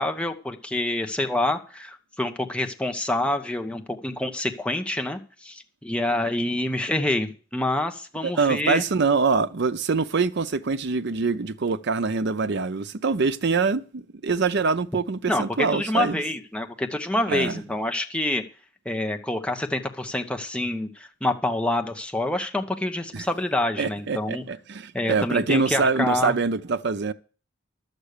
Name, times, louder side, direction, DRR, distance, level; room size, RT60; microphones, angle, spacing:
voice 1, 0.0-8.8 15.3-18.4 18.8-24.4 24.9-26.3, left 1 dB, 5° left, 1.1 m, -27 dB
voice 2, 8.2-16.2 17.3-17.6 23.1-23.2 23.8-27.1, right 4 dB, 60° right, 0.6 m, -24 dB
11.5 x 8.1 x 6.7 m
head